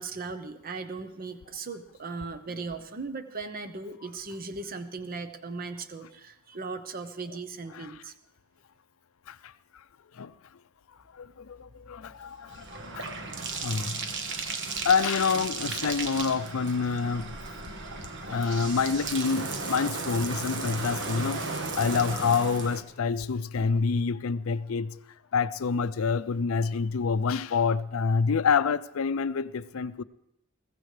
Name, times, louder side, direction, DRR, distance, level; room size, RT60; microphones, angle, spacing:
voice 1, 0.0-8.1, right 4 dB, 45° right, 0.8 m, -38 dB
voice 2, 11.1-13.1 13.6-14.0 14.8-17.3 18.2-21.4 21.8-25.0 25.3-30.0, left 5 dB, 70° left, 0.5 m, -27 dB
Bathtub (filling or washing), 11.4-22.8, right 4 dB, 60° right, 1.3 m, -35 dB
21.5 x 15.5 x 3.3 m
head